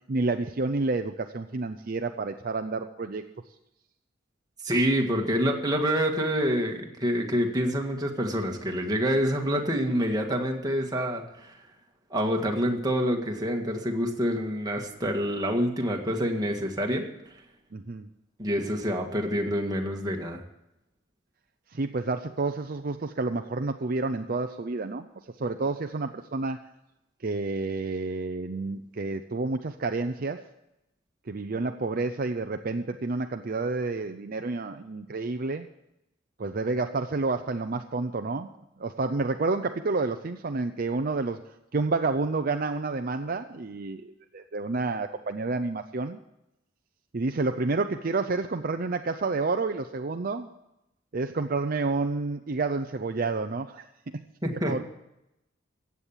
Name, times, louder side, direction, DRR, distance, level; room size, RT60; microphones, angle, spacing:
voice 1, 0.1-3.2 17.7-18.1 21.7-25.1 25.4-26.6 27.2-30.4 31.3-35.7 36.4-38.5 38.8-41.4 41.7-46.2 47.1-50.5 51.1-53.8 54.1-54.2 54.7-54.8, right 3 dB, 50° right, 7 dB, 0.6 m, -29 dB
voice 2, 4.6-11.5 12.1-17.1 18.4-20.4 54.4-54.7, equal, 20° right, 1 dB, 1.9 m, -27 dB
15.0 x 8.5 x 7.3 m, 0.88 s
head